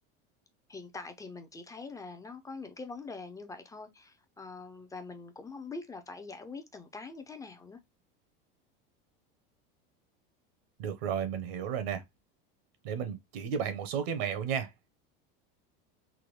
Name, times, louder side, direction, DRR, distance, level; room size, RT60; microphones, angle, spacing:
voice 1, 0.7-7.8, left 4 dB, 10° left, 0.5 m, -44 dB
voice 2, 10.8-12.0 12.8-14.7, right 7 dB, 80° right, 1.0 m, -33 dB
3.7 x 2.2 x 3.2 m
supercardioid pair, 130°, 29 cm